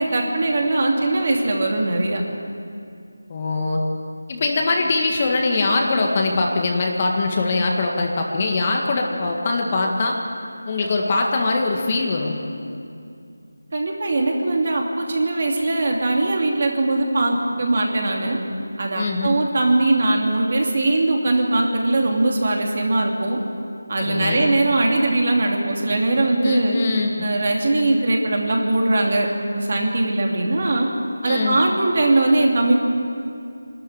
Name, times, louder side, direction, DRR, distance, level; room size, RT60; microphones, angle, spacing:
voice 1, 0.0-2.2 13.7-18.4 18.8-23.4 23.9-26.8 27.2-29.3 29.5-30.9 31.2-32.7, right 2 dB, 45° right, 0 dB, 2.8 m, -20 dB
voice 2, 3.3-3.8 4.3-10.2 10.7-12.4 18.9-19.3 24.0-24.4 26.4-27.3 31.2-31.6, left 3 dB, 25° left, 0 dB, 1.8 m, -22 dB
24.0 x 13.0 x 8.9 m, 2.4 s
figure-of-eight pair, 170°, 0 cm